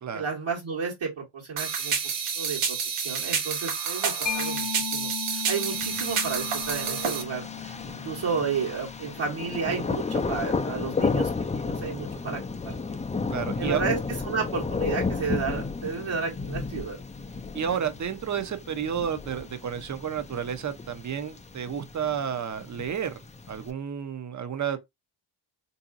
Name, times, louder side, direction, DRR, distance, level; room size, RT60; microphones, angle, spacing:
voice 1, 0.1-2.0 2.4-12.8 13.6-14.0 14.2-17.0, right 5 dB, 65° right, 1.3 m, -32 dB
sound 1, 1.6-7.2, right 6 dB, 90° right, 1.0 m, -29 dB
Mallet percussion, 4.3-11.5, left 11 dB, 40° left, 0.7 m, -38 dB
Thunder, 5.7-23.7, left 4 dB, 15° left, 0.3 m, -33 dB
voice 2, 13.3-13.8 17.5-23.2 23.5-24.8, right 8 dB, 35° right, 0.6 m, -31 dB
3.7 x 2.7 x 2.4 m
wide cardioid pair, 100°, 49 cm